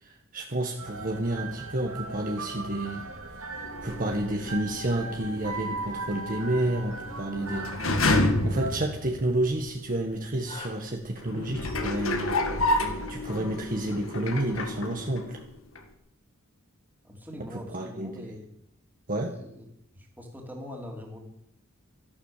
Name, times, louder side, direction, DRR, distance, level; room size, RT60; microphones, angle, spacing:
voice 1, 0.0-3.0 3.8-8.1 8.4-12.3 12.7-12.8 13.1-15.4 17.5-18.3 19.1-19.4, right 1 dB, 40° right, 2 dB, 1.4 m, -30 dB
sound 1, 0.8-8.8, right 3 dB, 85° right, 2.9 m, -38 dB
sound 2, 3.6-9.7 10.3-10.4 11.2-15.5 15.7-15.8, left 2 dB, 70° left, 1.8 m, -30 dB
sound 3, 4.5-10.7, left 3 dB, 30° left, 4.4 m, -50 dB
voice 2, 17.0-18.5 19.2-19.6 19.9-21.2, left 1 dB, 10° right, 1 dB, 3.1 m, -42 dB
13.0 x 11.5 x 7.4 m, 0.75 s
head